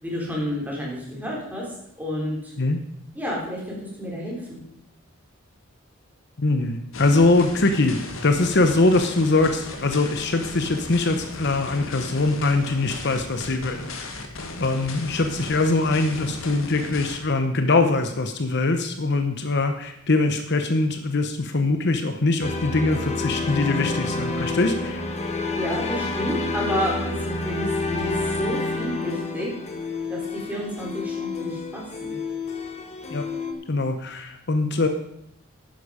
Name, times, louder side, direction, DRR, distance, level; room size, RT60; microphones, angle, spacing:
voice 1, 0.0-1.6 2.0-2.5 3.1-4.6 25.5-28.1 28.4-29.5 30.1-32.1, equal, 10° right, -4 dB, 3.9 m, -30 dB
voice 2, 6.4-13.8 14.6-25.0 33.1-33.3 33.7-34.9, left 2 dB, 55° left, 7 dB, 0.9 m, -22 dB
sound 1, 6.9-17.2, left 2 dB, 75° left, 1.6 m, -36 dB
sound 2, 22.4-33.5, left 3 dB, 30° left, 1.4 m, -29 dB
12.0 x 9.6 x 5.1 m, 0.76 s
head